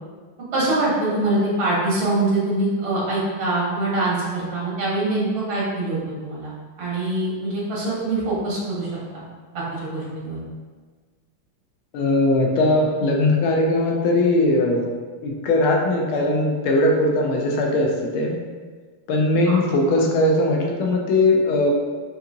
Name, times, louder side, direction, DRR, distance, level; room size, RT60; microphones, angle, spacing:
voice 1, 0.5-6.5 6.8-9.2 9.5-10.4 19.5-19.6, right 2 dB, 75° right, -6 dB, 2.2 m, -24 dB
voice 2, 11.9-14.9 15.2-18.4 19.1-21.7, left 2 dB, 75° left, 0 dB, 1.5 m, -19 dB
6.3 x 2.7 x 2.7 m, 1.4 s
omnidirectional pair, 2.4 m